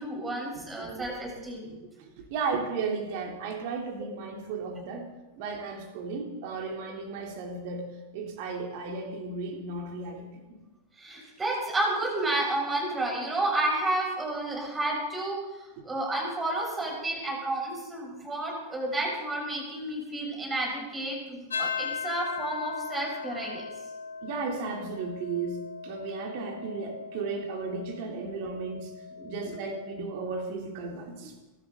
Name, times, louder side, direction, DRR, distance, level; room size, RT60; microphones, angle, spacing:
voice 1, 0.0-1.7 11.0-23.6 29.2-29.6, right 2 dB, 15° right, -2 dB, 7.0 m, -31 dB
voice 2, 0.8-1.1 1.6-5.1 5.4-7.8 8.1-10.6 15.8-15.9 24.2-28.9 29.2-31.4, right 4 dB, 45° right, 2 dB, 3.5 m, -35 dB
sound 1, 21.5-30.0, left 5 dB, 70° left, 0.9 m, -38 dB
24.0 x 13.0 x 4.1 m, 1.1 s
figure-of-eight pair, 90°, 0 cm